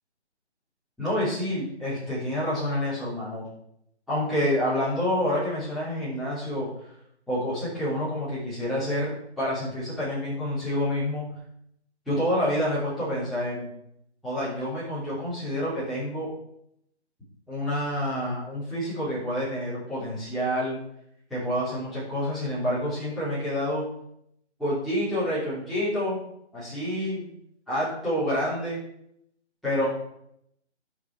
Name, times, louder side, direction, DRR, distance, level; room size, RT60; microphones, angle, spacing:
voice 1, 1.0-3.5 4.1-6.7 7.3-11.2 12.0-13.7 14.2-16.3 17.5-20.8 21.3-23.8 24.6-26.2 26.5-27.3 27.7-28.8 29.6-29.9, equal, ahead, -14 dB, 3.5 m, -28 dB
10.0 x 6.9 x 4.7 m, 0.74 s
figure-of-eight pair, 155°, 34 cm